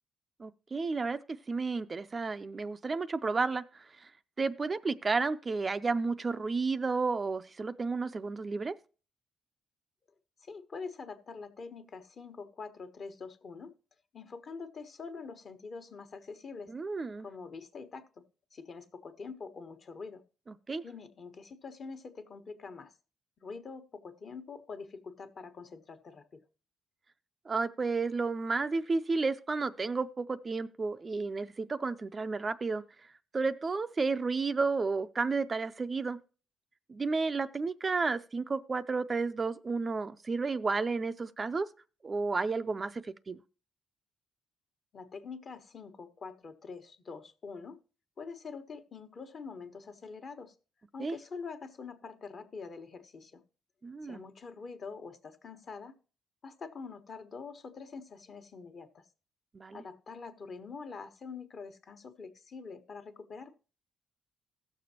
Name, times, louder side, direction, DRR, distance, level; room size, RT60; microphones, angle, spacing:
voice 1, 0.4-1.2 1.5-4.1 4.4-8.8 16.7-17.3 20.5-20.8 27.5-33.1 33.3-36.2 36.9-41.7 42.0-43.4 51.0-51.2 53.8-54.2 59.5-59.8, right 4 dB, 30° right, 0.4 m, -32 dB
voice 2, 10.4-13.7 14.1-16.7 17.2-18.2 18.5-20.2 20.8-22.9 23.4-26.4 44.9-47.8 48.2-50.5 50.9-53.4 54.0-55.9 56.4-59.0 59.7-63.5, left 4 dB, 50° left, 1.3 m, -45 dB
16.5 x 6.8 x 2.8 m
cardioid pair, 90°, 0 cm